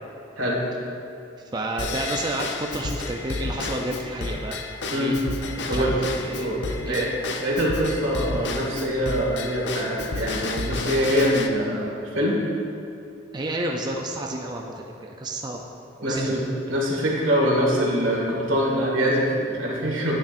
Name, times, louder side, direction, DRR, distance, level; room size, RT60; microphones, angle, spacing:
voice 1, 1.5-4.6 4.9-5.2 5.6-5.8 6.2-7.2 13.3-15.6 16.0-16.4 16.7-16.8 17.1-17.2, right 1 dB, 20° right, 0 dB, 0.4 m, -31 dB
Drum kit / Drum / Bell, 1.8-11.5, left 3 dB, 60° left, 0.5 m, -31 dB
voice 2, 6.4-7.0 7.4-12.4 16.0-16.4 16.7-20.2, equal, 85° right, -3 dB, 1.9 m, -24 dB
10.0 x 8.9 x 2.6 m, 2.6 s
head